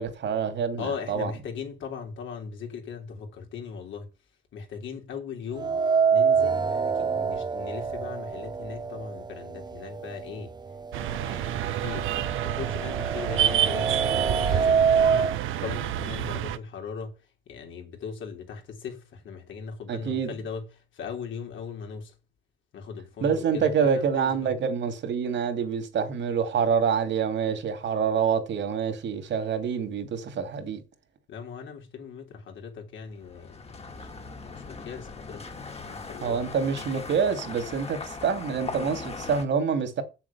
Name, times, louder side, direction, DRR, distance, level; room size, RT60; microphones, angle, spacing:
voice 1, 0.0-1.3 19.9-20.3 23.2-30.8 36.2-40.0, right 6 dB, 65° right, 2.6 m, -26 dB
voice 2, 0.8-4.1 4.5-5.8 6.1-10.5 11.0-17.1 17.5-22.1 22.7-24.5 31.3-35.5 35.8-36.4 36.9-37.0, left 6 dB, 75° left, 3.3 m, -39 dB
sound 1, 5.6-9.6 10.0-10.1 11.0-11.1 11.5-15.4, right 6 dB, 20° right, 0.6 m, -25 dB
sound 2, 10.9-16.6, right 11 dB, 85° right, 0.9 m, -28 dB
sound 3, 33.2-39.4, left 4 dB, 30° left, 2.1 m, -39 dB
7.5 x 7.1 x 7.0 m
cardioid pair, 90°, 20 cm